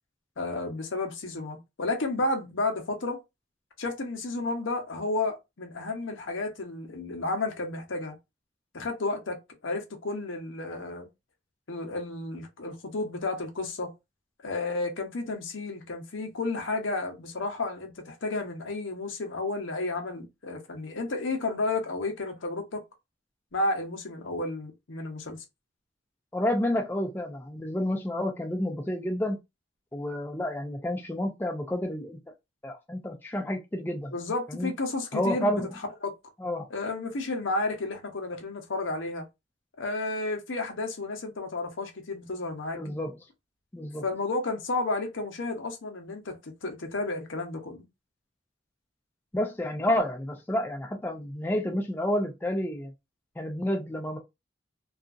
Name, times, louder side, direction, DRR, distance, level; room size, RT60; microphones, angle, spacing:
voice 1, 0.4-3.2 3.8-8.1 8.7-9.4 9.6-11.1 11.7-13.9 14.4-22.8 23.5-25.4 34.1-36.1 36.7-39.2 39.8-42.8 44.0-47.8, left 2 dB, 70° left, 0.8 m, -32 dB
voice 2, 26.3-29.4 29.9-32.2 32.6-34.1 34.5-34.7 35.1-35.7 36.4-36.7 42.7-43.2 43.7-44.0 49.3-52.9 53.4-54.2, left 1 dB, 10° left, 0.4 m, -30 dB
2.7 x 2.5 x 2.4 m
head